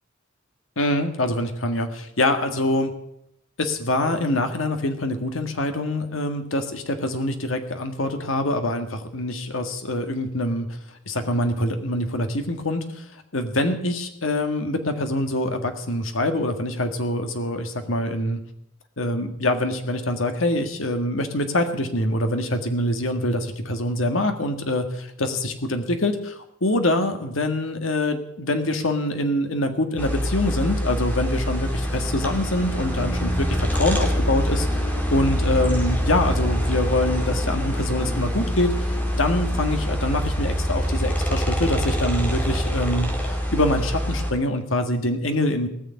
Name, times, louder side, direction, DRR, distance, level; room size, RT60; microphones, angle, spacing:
voice 1, 0.8-2.9 3.6-10.7 11.1-13.0 13.3-18.4 19.0-45.7, left 1 dB, 85° left, 6 dB, 1.8 m, -25 dB
sound 1, 30.0-44.3, equal, 10° left, 2.5 m, -25 dB
19.0 x 6.8 x 9.6 m, 0.78 s
head